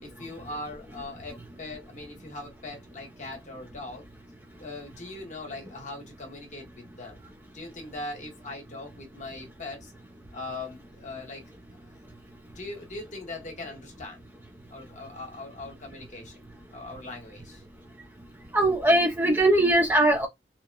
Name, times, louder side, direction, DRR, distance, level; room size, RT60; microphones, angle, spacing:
voice 1, 0.0-4.0 4.5-7.2 7.5-9.9 10.3-11.4 12.5-14.2 14.7-16.3 16.7-17.6, left 2 dB, 45° left, 1.0 m, -40 dB
voice 2, 18.5-20.3, right 1 dB, 10° right, 0.5 m, -20 dB
2.8 x 2.1 x 2.2 m
head